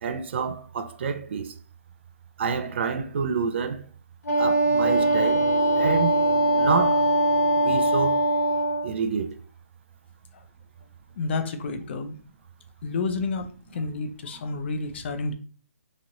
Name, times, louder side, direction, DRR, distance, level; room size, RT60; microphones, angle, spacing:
voice 1, 0.0-1.5 2.4-3.8 4.4-5.5 5.8-6.2 6.6-7.0 7.5-8.2 8.8-9.3, right 5 dB, 45° right, 0.3 m, -28 dB
Wind instrument woodwind instrument, 4.2-8.9, right 1 dB, 80° left, 1.1 m, -21 dB
sound 1, 4.8-8.6, equal, 15° right, 0.9 m, -37 dB
voice 2, 11.2-12.2 12.8-15.3, left 3 dB, 45° left, 0.4 m, -30 dB
3.0 x 2.5 x 2.7 m
hypercardioid pair, 155°, 8 cm